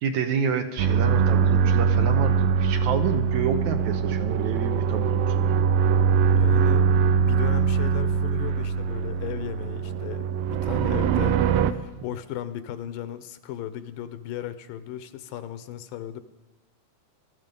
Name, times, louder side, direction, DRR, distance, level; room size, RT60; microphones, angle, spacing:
voice 1, 0.0-5.5 12.0-12.1, right 6 dB, 70° right, 6 dB, 2.2 m, -29 dB
sound 1, 0.8-11.7, right 7 dB, 85° right, 2.5 m, -22 dB
voice 2, 6.3-6.9 7.2-11.4 11.7-16.2, left 11 dB, 80° left, 12 dB, 2.4 m, -36 dB
18.5 x 13.0 x 5.3 m, 1.1 s
omnidirectional pair, 3.9 m